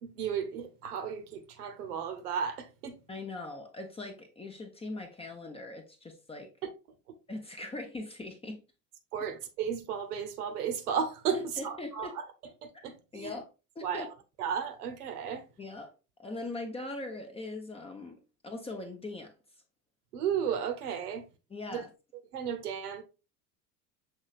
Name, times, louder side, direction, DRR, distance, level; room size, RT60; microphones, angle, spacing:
voice 1, 0.0-3.0 9.1-11.4 11.6-12.1 12.8-13.4 13.8-14.1 14.4-15.4 20.1-21.2 21.7-21.8 22.3-23.0, right 7 dB, 65° right, 0.9 m, -34 dB
voice 2, 3.1-6.5 7.3-8.6 11.3-12.2 13.1-13.5 13.8-14.1 15.6-15.9 16.2-18.2 18.4-19.3 21.5-21.9, left 2 dB, 10° left, 0.7 m, -40 dB
6.3 x 3.1 x 2.4 m
figure-of-eight pair, 75°, 48 cm